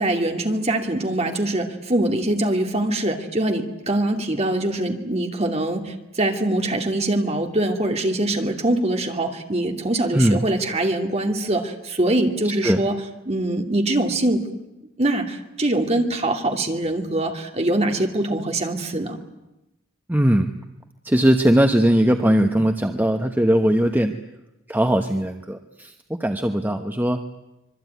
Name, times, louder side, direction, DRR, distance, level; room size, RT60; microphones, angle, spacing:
voice 1, 0.0-13.0 13.3-14.5 15.0-19.2, right 1 dB, 30° right, 3 dB, 2.6 m, -23 dB
voice 2, 20.1-20.5 21.0-24.2 24.7-27.2, right 1 dB, 10° right, 5 dB, 1.0 m, -19 dB
25.5 x 23.0 x 9.4 m, 0.96 s
head